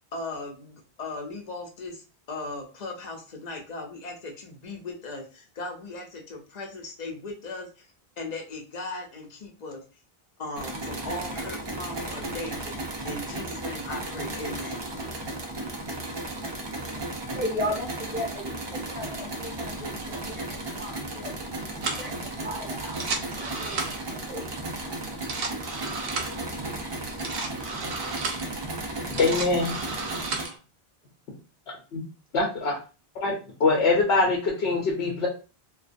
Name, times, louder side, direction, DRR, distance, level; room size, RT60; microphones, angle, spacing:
voice 1, 0.1-7.9 8.2-9.8 10.4-12.7 13.0-14.9, left 2 dB, 50° left, 1 dB, 0.6 m, -37 dB
sound 1, 10.5-30.4, right 2 dB, 40° right, 0.3 m, -35 dB
voice 2, 17.3-21.3 22.0-24.4, left 1 dB, 10° right, -2 dB, 0.7 m, -36 dB
sound 2, 21.8-22.1 22.8-24.2 25.1-26.4 27.1-28.5 29.0-30.6, right 3 dB, 70° right, 0.8 m, -33 dB
voice 3, 29.1-29.7 31.9-32.0 32.3-32.8 33.2-33.3 33.6-35.3, left 3 dB, 80° left, -2 dB, 0.9 m, -23 dB
2.3 x 2.2 x 2.5 m, 0.34 s
omnidirectional pair, 1.1 m